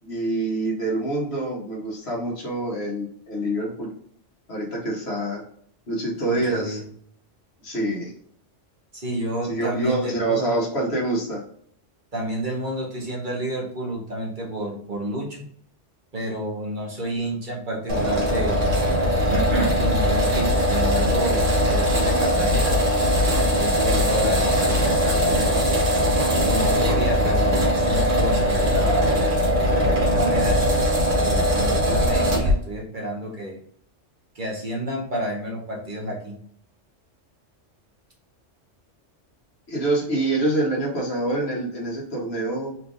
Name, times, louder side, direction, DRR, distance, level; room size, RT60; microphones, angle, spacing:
voice 1, 0.0-3.9 4.5-5.4 5.9-6.8 7.6-8.1 9.5-11.4 39.7-42.7, right 2 dB, 60° left, -2 dB, 1.7 m, -26 dB
voice 2, 6.3-6.8 8.9-10.8 12.1-15.4 16.1-18.6 19.3-22.8 23.4-25.8 26.3-29.1 29.8-30.6 31.1-33.6 34.3-36.4, right 1 dB, 45° right, -2 dB, 1.1 m, -30 dB
sound 1, 17.9-32.5, equal, 85° right, 1.8 m, -20 dB
4.3 x 3.4 x 2.6 m, 0.64 s
omnidirectional pair, 1.3 m